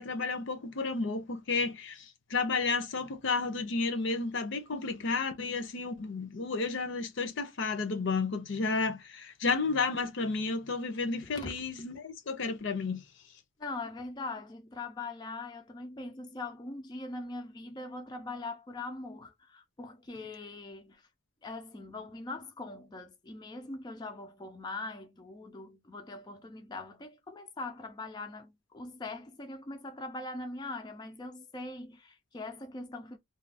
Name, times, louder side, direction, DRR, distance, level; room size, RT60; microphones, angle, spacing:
voice 1, 0.0-2.0 2.3-13.0, left 4 dB, 65° left, 0.6 m, -32 dB
voice 2, 11.2-11.7 13.6-21.1 21.4-33.2, left 2 dB, 20° left, 0.4 m, -42 dB
2.4 x 2.3 x 3.3 m
head